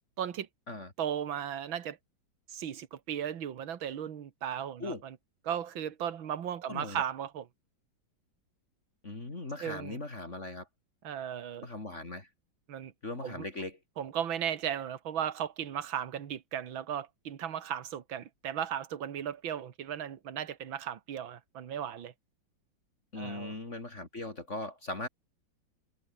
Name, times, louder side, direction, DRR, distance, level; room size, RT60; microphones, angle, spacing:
voice 1, 0.2-0.5 1.0-2.0 2.5-5.2 5.5-7.5 9.6-10.0 11.0-11.7 12.7-12.9 13.2-13.5 14.0-22.1 23.2-23.5, right 9 dB, 80° right, 2.3 m, -36 dB
voice 2, 6.7-7.0 9.0-10.7 11.6-12.3 13.0-13.8 23.1-25.1, left 2 dB, 35° left, 3.6 m, -39 dB
omnidirectional pair, 2.2 m